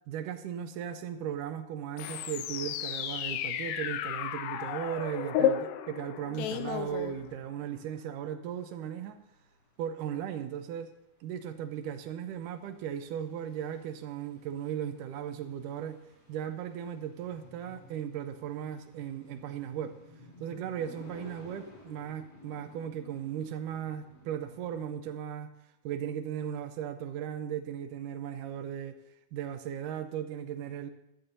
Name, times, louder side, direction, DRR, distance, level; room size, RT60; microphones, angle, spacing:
voice 1, 0.1-9.2 9.8-10.9 11.2-16.0 16.3-20.0 20.4-25.5 25.8-29.0 29.3-30.9, right 9 dB, 85° right, 2.2 m, -37 dB
sound 1, 2.0-7.6, left 10 dB, 90° left, 2.3 m, -33 dB
sound 2, 9.1-24.9, left 2 dB, 45° left, 4.2 m, -55 dB
16.5 x 12.5 x 2.7 m
omnidirectional pair, 3.7 m